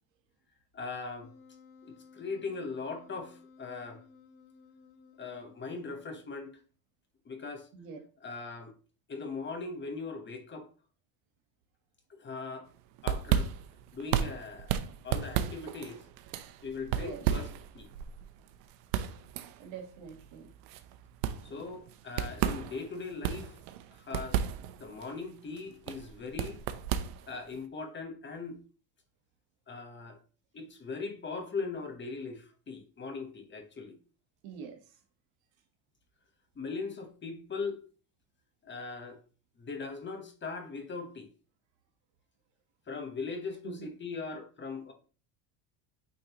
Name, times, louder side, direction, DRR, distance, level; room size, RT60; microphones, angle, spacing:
voice 1, 0.7-1.3 1.8-4.0 5.2-6.6 7.2-7.7 8.2-8.7 9.1-10.7 12.1-12.7 13.0-13.5 13.9-16.0 16.6-17.5 17.7-17.9 21.4-23.6 23.9-24.4 24.8-26.6 27.2-28.6 29.7-30.2 30.5-34.0 36.6-37.8 38.6-39.2 39.6-41.3 42.9-44.9, left 4 dB, 25° left, 1.2 m, -40 dB
Wind instrument woodwind instrument, 1.2-6.6, left 5 dB, 75° left, 1.9 m, -57 dB
sound 1, 12.7-27.6, right 9 dB, 90° right, 0.8 m, -34 dB
voice 2, 16.9-17.2 19.6-20.5 34.4-34.8 43.6-43.8, right 6 dB, 65° right, 1.5 m, -44 dB
9.0 x 3.9 x 3.0 m
cardioid pair, 130°, 48 cm